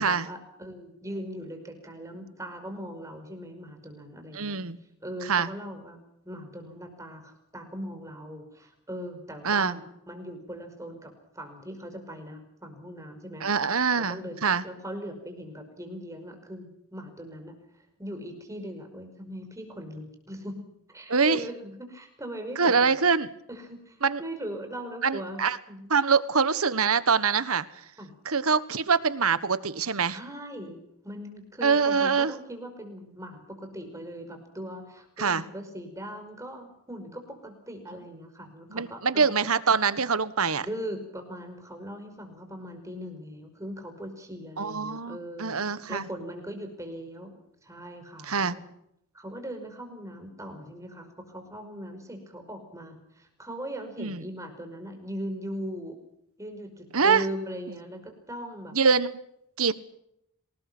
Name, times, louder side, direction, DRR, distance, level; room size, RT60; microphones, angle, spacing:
voice 1, 0.0-4.6 5.0-6.0 6.2-13.6 13.9-14.4 14.6-17.5 18.0-20.6 20.9-22.9 23.5-25.4 25.7-26.0 28.0-28.1 30.1-30.8 31.0-39.3 40.6-48.6 49.1-56.0 56.4-58.8, equal, 15° right, 5 dB, 5.4 m, -40 dB
voice 2, 4.3-4.8 5.3-5.5 9.4-9.7 13.4-14.6 21.1-21.4 22.6-23.3 24.0-24.2 25.0-25.6 25.9-27.7 28.2-30.2 31.6-32.3 35.2-35.4 38.7-40.7 44.6-46.1 48.3-48.6 54.0-54.2 56.9-57.2 58.7-59.1 59.6-59.7, right 5 dB, 70° right, 15 dB, 1.4 m, -24 dB
27.5 x 19.5 x 6.2 m, 0.77 s
head